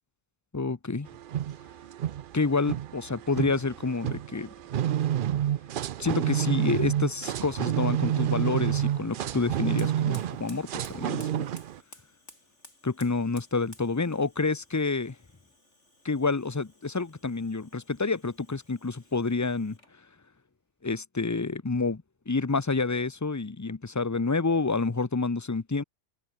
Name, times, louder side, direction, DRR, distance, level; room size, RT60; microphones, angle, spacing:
voice 1, 0.5-1.1 2.3-4.5 6.0-11.5 12.8-15.2 16.0-19.8 20.8-25.8, left 3 dB, 20° left, 0.6 m, -28 dB
sound 1, 1.1-11.8, right 11 dB, 55° right, 0.6 m, -29 dB
Fire, 9.5-20.0, left 2 dB, 75° left, 7.0 m, -56 dB
omnidirectional pair, 1.2 m